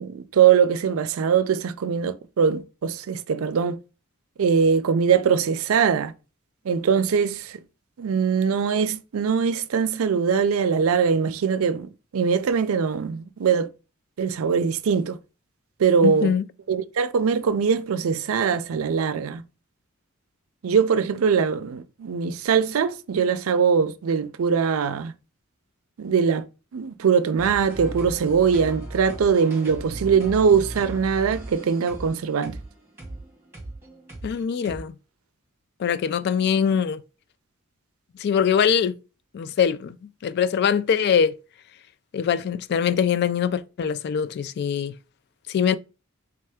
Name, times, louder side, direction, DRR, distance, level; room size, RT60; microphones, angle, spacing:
voice 1, 0.0-3.8 4.4-6.1 6.6-7.6 8.0-13.7 14.2-15.2 15.8-16.3 16.7-19.4 20.6-25.1 26.0-26.5 26.7-32.6, right 6 dB, 85° right, 0.4 m, -22 dB
voice 2, 16.0-16.5 34.2-34.9 35.8-37.0 38.2-39.0 39.3-40.0 40.2-41.3 42.1-45.0 45.5-45.8, left 7 dB, 50° left, 0.3 m, -23 dB
sound 1, 27.4-34.8, right 2 dB, 10° right, 1.6 m, -38 dB
3.4 x 3.3 x 3.4 m
head